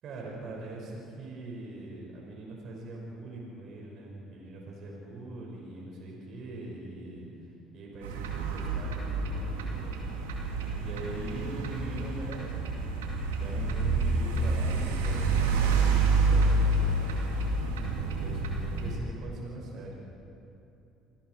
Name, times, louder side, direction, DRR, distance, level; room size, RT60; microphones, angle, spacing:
voice 1, 0.0-7.3 7.7-10.2 10.8-17.5 17.9-19.9, right 2 dB, 55° right, -2 dB, 5.6 m, -42 dB
sound 1, 8.0-19.0, right 3 dB, 85° right, 2.6 m, -28 dB
29.0 x 20.5 x 4.7 m, 2.8 s
hypercardioid pair, 65°, 0 cm